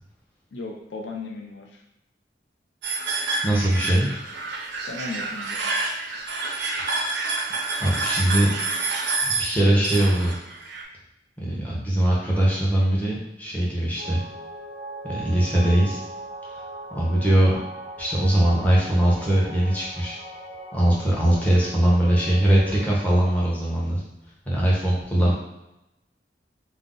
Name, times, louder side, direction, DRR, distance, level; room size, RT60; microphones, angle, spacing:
voice 1, 0.5-1.8 4.8-5.6, left 3 dB, 80° left, 1 dB, 0.5 m, -36 dB
sound 1, 2.8-10.8, right 3 dB, 70° right, 0.4 m, -28 dB
voice 2, 3.4-4.1 7.8-8.5 9.2-10.3 11.4-14.2 15.0-16.0 16.9-17.5 18.0-20.2 20.7-24.0 24.5-25.3, right 1 dB, 10° left, -6 dB, 0.7 m, -21 dB
sound 2, 13.9-22.8, right 1 dB, 40° left, 1.2 m, -39 dB
2.5 x 2.0 x 3.6 m, 0.92 s
head